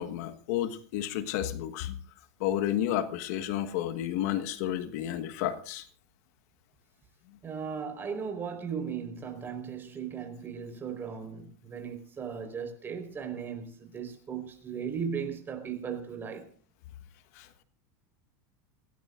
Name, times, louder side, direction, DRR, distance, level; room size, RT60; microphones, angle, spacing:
voice 1, 0.0-2.0 2.4-5.9 17.3-17.5, left 11 dB, 70° left, 1.5 m, -31 dB
voice 2, 7.4-16.5, right 6 dB, 25° right, 4.5 m, -37 dB
28.0 x 17.5 x 2.5 m
supercardioid pair, 130°, 9 cm